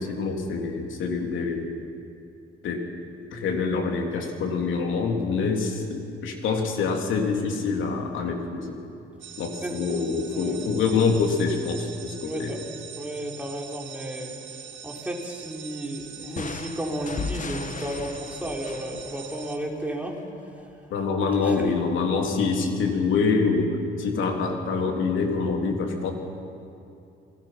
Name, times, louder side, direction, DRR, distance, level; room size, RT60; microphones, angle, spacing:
voice 1, 0.0-1.7 2.6-2.8 3.3-8.8 9.4-12.5 20.9-26.1, left 4 dB, 75° left, 2 dB, 3.4 m, -25 dB
sound 1, 9.2-19.6, right 8 dB, 70° right, 2.3 m, -43 dB
voice 2, 12.2-12.6 13.0-14.3 14.8-20.2 20.5-20.7 21.4-21.7, right 1 dB, 5° right, -1 dB, 4.3 m, -33 dB
sound 2, 16.4-20.0, left 5 dB, 40° left, 1.2 m, -36 dB
29.0 x 19.5 x 6.0 m, 2.7 s
cardioid pair, 90°, 20 cm